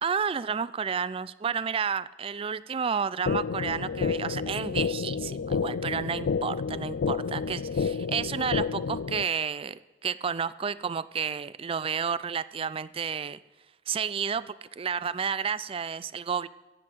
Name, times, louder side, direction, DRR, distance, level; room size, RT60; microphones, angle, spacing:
voice 1, 0.0-13.4 13.9-16.5, right 6 dB, 30° right, 17 dB, 0.3 m, -31 dB
sound 1, 3.3-9.3, left 5 dB, 65° left, 0.4 m, -30 dB
16.0 x 7.5 x 6.3 m, 1.2 s
head